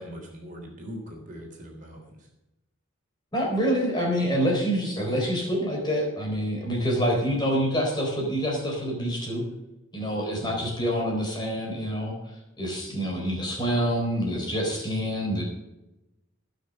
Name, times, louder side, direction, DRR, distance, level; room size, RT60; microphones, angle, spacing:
voice 1, 0.0-2.3 10.4-10.8, equal, 40° right, 0 dB, 3.4 m, -41 dB
voice 2, 3.3-9.4 9.9-15.4, equal, 20° left, -1 dB, 4.2 m, -27 dB
17.5 x 6.3 x 6.5 m, 0.95 s
head